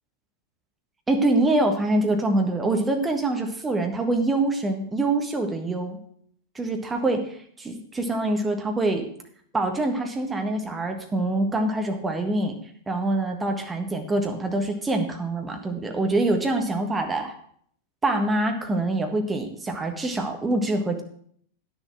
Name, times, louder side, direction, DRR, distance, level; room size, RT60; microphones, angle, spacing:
voice 1, 1.1-6.0 6.5-9.1 9.5-12.5 12.9-17.3 18.0-21.0, right 2 dB, 15° right, 4 dB, 1.6 m, -25 dB
10.0 x 6.9 x 6.0 m, 0.63 s
figure-of-eight pair, 90°, 0 cm